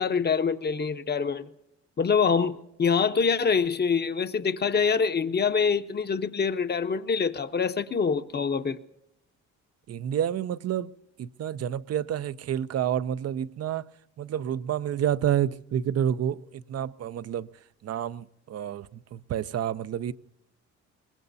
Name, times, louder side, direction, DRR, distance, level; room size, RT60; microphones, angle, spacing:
voice 1, 0.0-1.5 2.0-8.8, left 5 dB, 35° left, 0.9 m, -25 dB
voice 2, 9.9-10.9 11.2-13.9 14.2-17.5 17.8-20.1, right 10 dB, 55° right, 0.6 m, -29 dB
24.0 x 20.5 x 2.7 m
cardioid pair, 90°, 30 cm